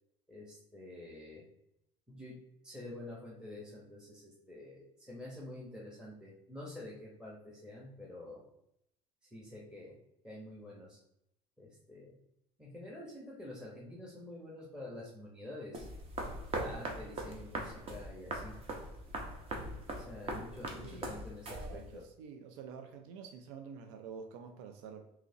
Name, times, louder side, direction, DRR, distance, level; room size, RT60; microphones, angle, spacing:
voice 1, 0.3-1.4 2.1-2.4 2.6-8.4 9.3-9.9 10.2-11.0 11.6-12.1 12.6-15.9 16.5-18.6 20.0-22.0, left 1 dB, 5° right, -4 dB, 0.9 m, -48 dB
sound 1, 15.7-22.0, right 2 dB, 35° right, 0.8 m, -41 dB
voice 2, 21.5-25.1, right 6 dB, 85° right, 6 dB, 0.4 m, -48 dB
3.8 x 3.0 x 2.7 m, 0.80 s
supercardioid pair, 115°, 16 cm